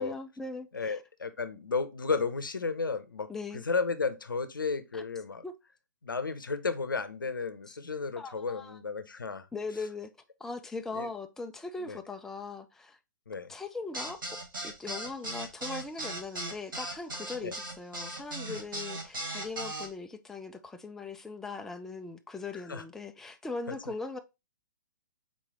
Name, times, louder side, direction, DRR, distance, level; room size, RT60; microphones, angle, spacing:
voice 1, 0.0-1.0 3.3-3.6 4.9-5.0 5.4-5.5 7.7-7.8 8.2-8.8 9.5-10.1 10.4-13.0 13.5-24.2, left 3 dB, 5° left, 0.3 m, -40 dB
voice 2, 0.7-5.4 6.0-9.5 10.9-11.1 11.8-12.0 13.3-13.5 17.4-17.5 18.5-18.6 22.7-22.8, left 4 dB, 90° left, 0.6 m, -33 dB
sound 1, 13.9-19.9, right 1 dB, 85° right, 1.6 m, -37 dB
4.1 x 3.2 x 3.6 m
hypercardioid pair, 125°, 11 cm